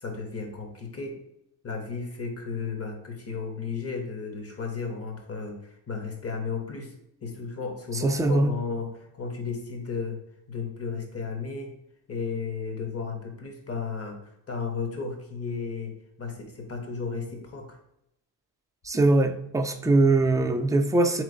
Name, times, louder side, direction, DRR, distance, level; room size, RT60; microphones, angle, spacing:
voice 1, 0.0-1.2 1.6-5.6 5.9-6.9 7.2-10.2 10.5-11.7 12.1-17.8, left 5 dB, 35° left, 3 dB, 1.2 m, -34 dB
voice 2, 7.9-8.5 18.8-21.2, right 2 dB, 10° right, 5 dB, 0.4 m, -22 dB
4.0 x 3.1 x 3.9 m, 0.81 s
cardioid pair, 85°, 40 cm